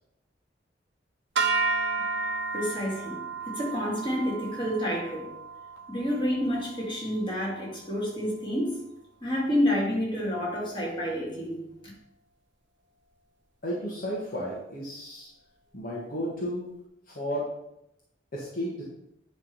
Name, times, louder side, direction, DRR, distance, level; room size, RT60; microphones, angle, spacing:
sound 1, 1.4-7.7, right 4 dB, 90° right, 1.0 m, -32 dB
voice 1, 2.5-3.2 3.5-5.3 5.9-8.8 9.2-11.6, equal, 30° left, -5 dB, 3.1 m, -29 dB
voice 2, 13.6-15.3 15.7-16.6 17.1-17.5 18.3-18.8, equal, 55° left, -5 dB, 1.7 m, -33 dB
10.0 x 3.6 x 5.6 m, 0.82 s
head